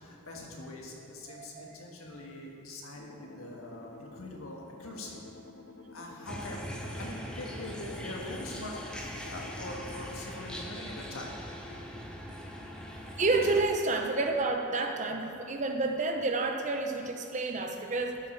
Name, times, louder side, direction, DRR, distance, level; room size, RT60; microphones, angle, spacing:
voice 1, 0.0-5.2 5.9-8.9 9.3-11.3, left 1 dB, 70° left, -1 dB, 1.6 m, -43 dB
voice 2, 1.3-1.8 13.2-18.2, right 3 dB, 35° right, 4 dB, 0.7 m, -30 dB
sound 1, 3.0-10.1, left 2 dB, 55° left, 0.7 m, -50 dB
sound 2, 6.2-13.6, equal, 5° left, 0.8 m, -41 dB
12.0 x 7.3 x 4.6 m, 2.9 s
head